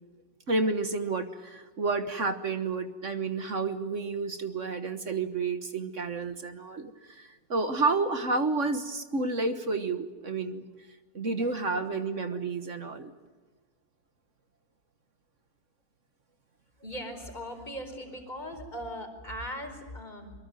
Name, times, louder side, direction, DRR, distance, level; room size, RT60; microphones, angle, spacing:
voice 1, 0.5-10.6 11.1-13.1, right 3 dB, 45° right, 9 dB, 1.6 m, -30 dB
voice 2, 11.4-12.0 12.3-12.4 16.8-20.3, equal, 20° left, 5 dB, 4.7 m, -40 dB
25.0 x 22.0 x 9.1 m, 1.3 s
omnidirectional pair, 2.0 m